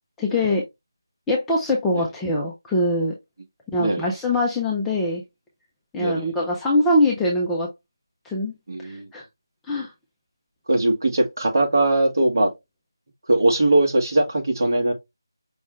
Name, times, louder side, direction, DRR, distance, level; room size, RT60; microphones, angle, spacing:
voice 1, 0.2-0.6 1.3-3.1 3.7-5.2 5.9-7.7 8.2-8.5 8.8-9.2 9.7-9.9, left 1 dB, 5° left, 0.3 m, -23 dB
voice 2, 3.8-4.1 6.0-6.3 8.7-9.1 10.7-12.5 13.3-14.9, right 2 dB, 50° right, 1.4 m, -20 dB
5.3 x 2.4 x 3.0 m
figure-of-eight pair, 170°, 2 cm